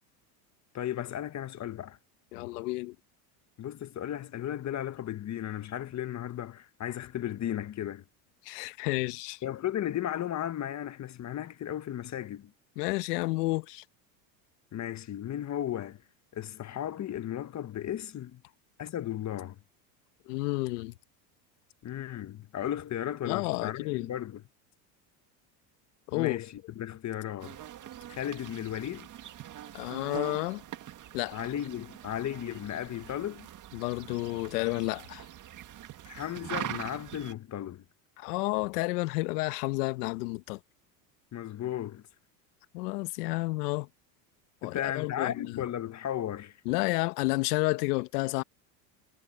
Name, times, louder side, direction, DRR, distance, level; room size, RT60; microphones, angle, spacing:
voice 1, 0.7-2.0 3.6-8.0 9.4-12.5 14.7-16.0 16.3-18.4 18.8-19.6 21.8-24.4 26.1-27.6 28.1-29.1 31.3-33.5 36.0-37.8 41.3-42.0 44.6-46.6, left 11 dB, 35° left, 1.6 m, -35 dB
voice 2, 2.3-2.9 8.4-9.4 12.8-13.8 20.3-20.9 23.3-24.1 26.1-26.4 29.7-30.6 31.1-31.4 33.7-35.2 38.2-40.6 42.7-43.9 44.6-45.5 46.6-48.4, left 22 dB, 80° left, 1.2 m, -31 dB
sound 1, 27.4-37.3, right 11 dB, 40° right, 2.0 m, -43 dB
supercardioid pair, 105°, 46 cm